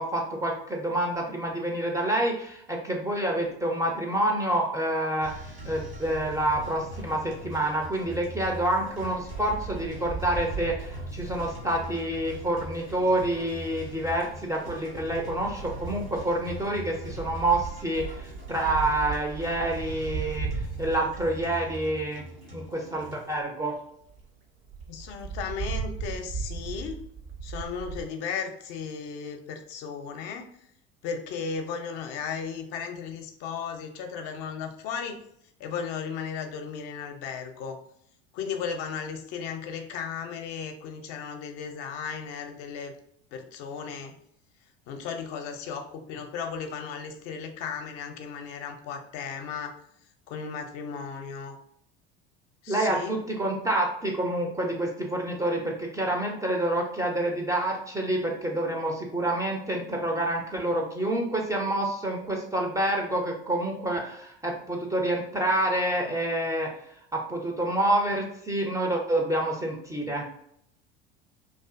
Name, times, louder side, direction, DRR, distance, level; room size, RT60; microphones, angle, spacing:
voice 1, 0.0-22.2 22.5-23.8 52.7-66.7 67.1-70.2, right 1 dB, 10° right, 0 dB, 0.4 m, -28 dB
sound 1, 5.2-23.4, right 1 dB, 85° right, 1.4 m, -41 dB
Wind, 9.1-12.8 13.9-14.3 15.0-22.0 22.6-22.7 23.0-23.1 23.4-23.5 23.8-23.9 24.1-24.2 24.7-28.0, right 5 dB, 65° right, 0.7 m, -37 dB
voice 2, 24.9-27.0 27.4-30.5 31.0-35.2 35.6-37.8 38.3-42.9 43.3-44.1 44.9-49.7 50.3-51.6 52.6-53.2, left 6 dB, 50° left, 5 dB, 0.5 m, -35 dB
2.4 x 2.4 x 2.3 m, 0.71 s
hypercardioid pair, 70°, 32 cm